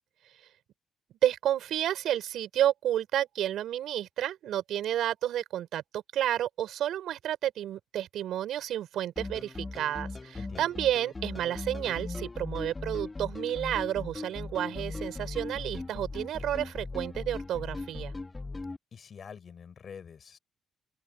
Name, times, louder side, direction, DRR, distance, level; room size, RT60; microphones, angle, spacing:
voice 1, 1.2-18.1, right 11 dB, 80° right, 4.6 m, -31 dB
sound 1, 9.2-18.8, left 3 dB, 20° left, 1.9 m, -38 dB
voice 2, 10.4-10.7 18.9-20.4, left 7 dB, 50° left, 7.3 m, -46 dB
open air
cardioid pair, 90°, 0 cm